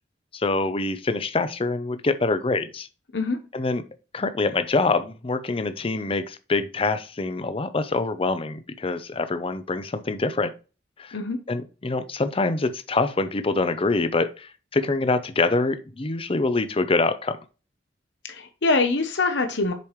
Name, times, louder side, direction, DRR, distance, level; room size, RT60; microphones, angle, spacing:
voice 1, 0.3-2.9 3.5-3.8 4.1-10.5 11.0-11.2 11.5-17.4, left 3 dB, 30° left, 0.6 m, -25 dB
voice 2, 18.3-19.7, left 3 dB, 70° left, 0.8 m, -24 dB
6.9 x 4.8 x 3.1 m
head